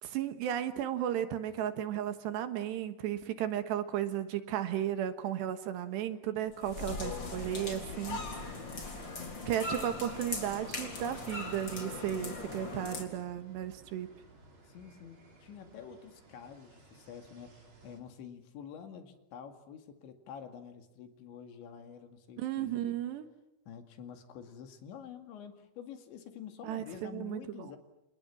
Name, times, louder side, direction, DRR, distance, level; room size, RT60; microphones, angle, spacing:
voice 1, 0.0-8.5 9.5-14.1 22.4-23.3 26.6-27.4, right 10 dB, 70° right, 10 dB, 3.3 m, -34 dB
sound 1, 6.5-13.0, left 3 dB, 25° left, 3.9 m, -40 dB
voice 2, 6.8-7.8 14.6-22.9 23.7-27.8, left 8 dB, 75° left, 7 dB, 4.4 m, -48 dB
sound 2, 8.1-18.0, right 2 dB, 25° right, 4.3 m, -57 dB
29.5 x 29.5 x 6.1 m, 0.88 s
omnidirectional pair, 5.4 m